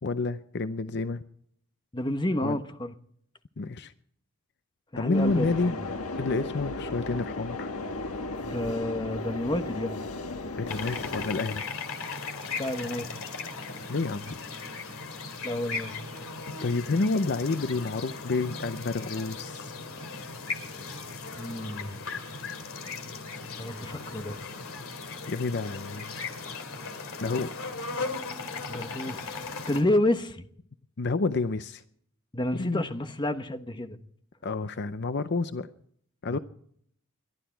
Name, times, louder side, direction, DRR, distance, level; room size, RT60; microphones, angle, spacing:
voice 1, 0.0-1.2 2.4-2.6 3.6-3.9 5.0-5.8 6.1-7.7 10.6-11.7 13.9-14.4 16.6-19.7 25.3-26.2 27.2-27.6 31.0-31.8 32.5-32.9 34.4-35.7 36.2-36.4, left 3 dB, 50° left, 0.6 m, -29 dB
voice 2, 1.9-2.9 4.9-5.8 8.4-10.1 12.6-13.0 15.4-15.9 21.3-22.0 23.6-24.4 28.7-29.4 29.7-30.5 32.3-34.0 36.3-36.4, left 1 dB, 20° left, 1.1 m, -30 dB
sound 1, 5.1-11.2, left 2 dB, 90° left, 1.5 m, -35 dB
sound 2, 10.7-29.8, left 4 dB, 70° left, 2.5 m, -37 dB
22.0 x 12.5 x 4.6 m
head